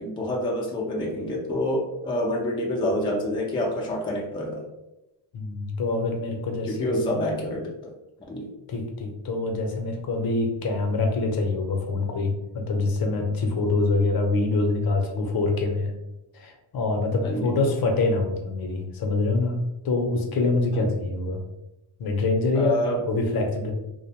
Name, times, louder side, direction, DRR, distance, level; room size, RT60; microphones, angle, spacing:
voice 1, 0.0-4.6 6.6-7.9 8.3-8.5 17.2-17.5 20.8-20.9 22.5-23.0, left 1 dB, 10° left, -1 dB, 0.3 m, -27 dB
voice 2, 5.3-7.2 8.7-15.9 16.3-19.6 19.8-21.4 22.0-23.7, left 3 dB, 50° left, 3 dB, 0.6 m, -25 dB
2.5 x 2.0 x 2.8 m, 0.95 s
cardioid pair, 75°, 50 cm